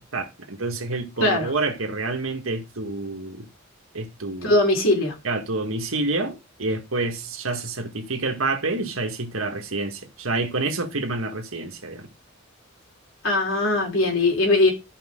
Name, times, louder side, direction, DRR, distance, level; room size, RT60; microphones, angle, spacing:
voice 1, 0.0-3.5 3.9-4.5 5.2-12.1, right 3 dB, 90° right, 1.9 m, -28 dB
voice 2, 4.4-5.1 13.2-14.7, left 2 dB, 70° left, 4.3 m, -20 dB
13.5 x 5.4 x 3.8 m
head